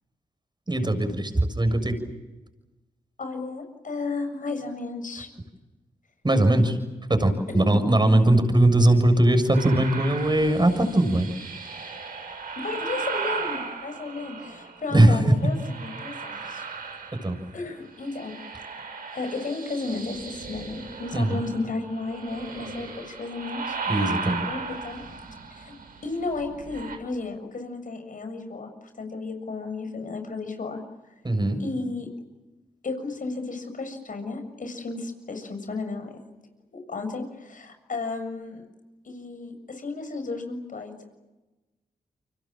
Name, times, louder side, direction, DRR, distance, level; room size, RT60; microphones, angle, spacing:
voice 1, 0.7-2.0 6.2-6.8 7.1-11.3 14.9-15.3 16.4-16.5 17.1-17.4 21.1-21.4 23.9-24.4 31.2-31.6, right 1 dB, 30° right, 7 dB, 7.0 m, -20 dB
voice 2, 3.2-5.3 7.5-7.7 12.6-16.7 17.5-18.4 19.1-23.8 24.3-25.0 25.6-25.7 26.0-30.8 31.6-32.1 32.8-36.2 36.7-38.6 39.0-41.1, left 3 dB, 60° left, 7 dB, 7.1 m, -33 dB
sound 1, 9.5-14.9 15.4-17.6 17.9-27.0, right 5 dB, 70° right, 6.5 m, -36 dB
30.0 x 25.0 x 7.6 m, 1.1 s
supercardioid pair, 45°, 15 cm